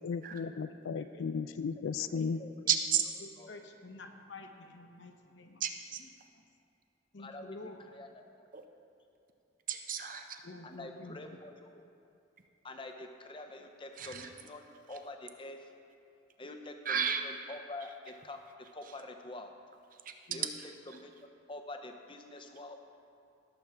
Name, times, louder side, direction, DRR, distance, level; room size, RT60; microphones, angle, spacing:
voice 1, 0.0-2.4, left 5 dB, 80° left, 12 dB, 0.4 m, -35 dB
voice 2, 2.1-2.5 7.2-7.6 7.9-8.1 8.4-8.5 10.6-11.8 12.6-15.6 16.4-17.0 17.5-18.4 18.7-19.5 20.3-20.5 20.9-22.8, left 2 dB, 25° left, 5 dB, 0.6 m, -46 dB
voice 3, 2.7-3.0 5.6-6.0 8.5-8.6 9.7-10.4 13.9-14.3 14.9-15.0 16.8-17.2 17.8-17.9 18.8-19.0 19.9-21.0, right 8 dB, 40° right, 5 dB, 0.7 m, -34 dB
voice 4, 3.5-5.6 7.1-7.8 10.4-11.2 20.3-20.4, left 2 dB, 65° left, 5 dB, 0.8 m, -49 dB
17.5 x 7.1 x 3.5 m, 2.6 s
head